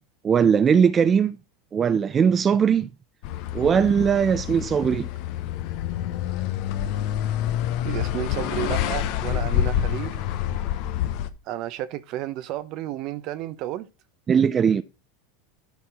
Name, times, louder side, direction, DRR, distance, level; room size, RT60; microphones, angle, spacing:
voice 1, 0.2-1.4 1.7-2.9 3.5-5.1 14.3-14.8, right 7 dB, 30° right, 0.5 m, -19 dB
sound 1, 3.2-11.3, left 11 dB, 60° left, 0.9 m, -27 dB
voice 2, 7.8-10.2 11.5-13.9, right 13 dB, 55° right, 0.8 m, -32 dB
10.5 x 4.4 x 4.9 m
hypercardioid pair, 95°, 0 cm